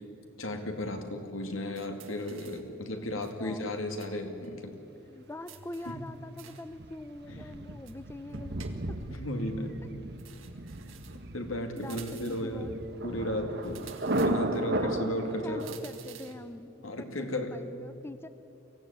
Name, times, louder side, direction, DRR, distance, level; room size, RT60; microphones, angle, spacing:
voice 1, 0.4-4.8 5.9-6.0 7.3-7.4 9.1-9.8 11.3-12.7 13.0-13.9 14.1-15.7 16.8-17.6, left 1 dB, 85° left, 5 dB, 2.5 m, -34 dB
sound 1, 1.8-2.7 3.2-4.2 4.4-4.5 5.5-6.7 7.9-9.1 10.2-11.3 11.8-12.6 13.6-14.7 15.6-16.5, right 7 dB, 75° right, 1.8 m, -52 dB
voice 2, 3.1-3.7 5.1-8.6 8.9-9.0 11.7-12.7 14.7-18.3, left 1 dB, 10° left, 11 dB, 0.6 m, -44 dB
Thunder, 6.7-15.7, right 1 dB, 55° right, 1.3 m, -35 dB
23.5 x 16.0 x 9.9 m, 3.0 s
head